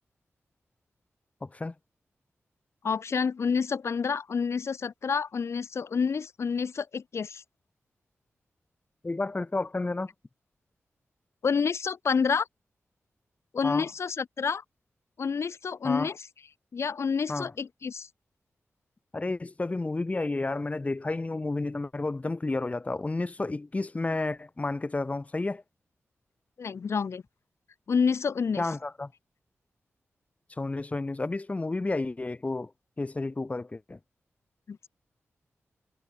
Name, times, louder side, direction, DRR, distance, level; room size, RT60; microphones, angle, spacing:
voice 1, 1.4-1.7 9.0-10.1 13.6-13.9 15.8-16.1 17.3-17.5 19.1-25.6 28.6-29.1 30.6-32.7 33.0-34.0, left 2 dB, 30° left, 6.2 m, -31 dB
voice 2, 2.8-7.4 11.4-12.5 13.5-14.6 15.2-16.2 16.7-18.1 26.6-27.2 27.9-28.6 34.7-34.8, left 6 dB, 65° left, 6.4 m, -28 dB
wide cardioid pair, 100°, 5 cm